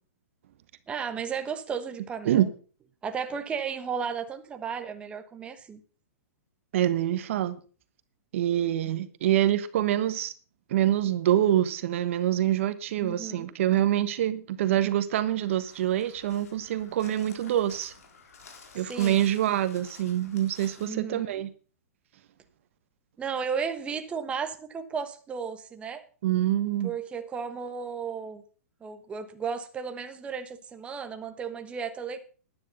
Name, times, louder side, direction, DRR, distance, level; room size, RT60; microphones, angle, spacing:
voice 1, 0.9-2.5 3.0-5.8 13.0-13.5 18.8-19.3 20.8-21.4 23.2-26.0 26.8-28.4 28.8-32.2, right 6 dB, 15° right, 1.3 m, -34 dB
voice 2, 6.7-7.6 8.3-10.3 10.7-17.9 18.7-21.5 26.2-26.9, right 12 dB, 55° right, 1.2 m, -25 dB
Crow, 15.1-20.9, left 5 dB, 75° left, 3.9 m, -52 dB
12.5 x 10.5 x 5.4 m
hypercardioid pair, 145°, 8 cm